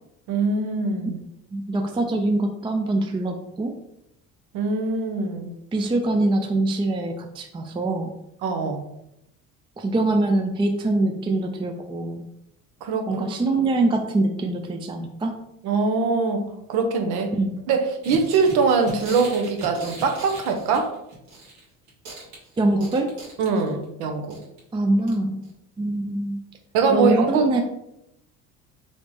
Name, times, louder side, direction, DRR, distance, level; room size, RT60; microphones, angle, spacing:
voice 1, 0.3-1.2 4.5-5.5 8.4-8.8 12.8-13.4 15.6-17.3 17.7-20.9 23.4-24.4 26.7-27.6, right 4 dB, 75° right, 4 dB, 0.9 m, -23 dB
voice 2, 1.5-3.7 5.7-8.1 9.8-12.2 13.1-15.4 17.3-17.6 22.6-23.2 24.7-25.4 25.8-26.4 26.9-27.6, right 2 dB, 15° right, 4 dB, 0.4 m, -23 dB
sound 1, 18.0-21.6 21.9-23.8 24.3-24.6 25.1-25.2 25.4-25.5, right 1 dB, 90° right, 1.6 m, -39 dB
4.1 x 3.2 x 3.2 m, 0.82 s
supercardioid pair, 80°, 39 cm